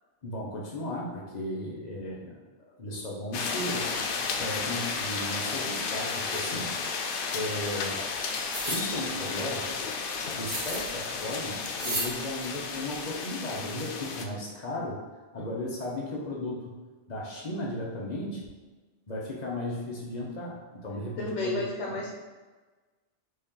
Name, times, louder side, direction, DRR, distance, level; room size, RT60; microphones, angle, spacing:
voice 1, 0.2-2.3 2.8-3.9 4.3-6.6 7.3-8.0 8.7-9.7 10.4-15.0 15.3-16.7 17.1-18.5 19.1-20.6 20.8-21.6, left 1 dB, 40° left, -3 dB, 0.9 m, -35 dB
sound 1, 3.3-14.2, left 5 dB, 60° left, 0.6 m, -33 dB
sound 2, 8.5-8.8 10.5-10.9 11.8-12.1, right 1 dB, 45° right, 1.4 m, -32 dB
voice 2, 21.2-22.1, left 2 dB, 80° left, -3 dB, 1.1 m, -32 dB
4.2 x 3.2 x 3.7 m, 1.3 s
omnidirectional pair, 1.2 m